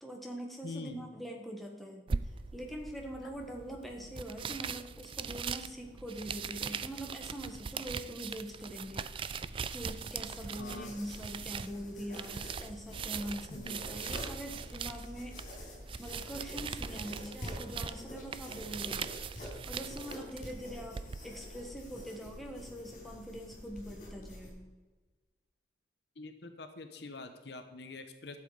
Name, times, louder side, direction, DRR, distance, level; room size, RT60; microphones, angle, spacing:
voice 1, 0.0-2.0 2.5-9.4 9.7-15.4 16.0-24.7, equal, ahead, 0 dB, 1.4 m, -43 dB
voice 2, 0.6-1.0 10.6-10.9 13.5-13.8 26.2-28.4, left 3 dB, 60° left, 8 dB, 0.9 m, -45 dB
sound 1, 2.1-21.2, right 6 dB, 30° right, 0.3 m, -41 dB
sound 2, 8.8-24.5, left 1 dB, 40° left, 4.0 m, -47 dB
sound 3, 14.2-17.4, equal, 20° left, 2.4 m, -52 dB
12.0 x 7.4 x 4.9 m, 1.3 s
head